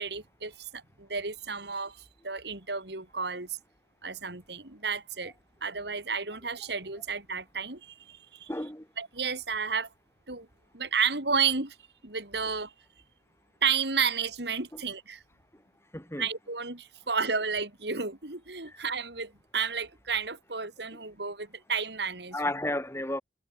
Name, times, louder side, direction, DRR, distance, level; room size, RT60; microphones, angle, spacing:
voice 1, 0.0-3.6 4.0-5.3 5.6-8.5 9.0-9.9 10.3-10.5 10.7-11.8 12.0-12.7 13.6-15.2 16.2-22.4, right 5 dB, 65° right, 3.5 m, -32 dB
voice 2, 8.5-8.8 14.7-14.8 15.9-16.3 20.9-21.0 22.3-23.2, left 1 dB, 15° left, 4.2 m, -32 dB
head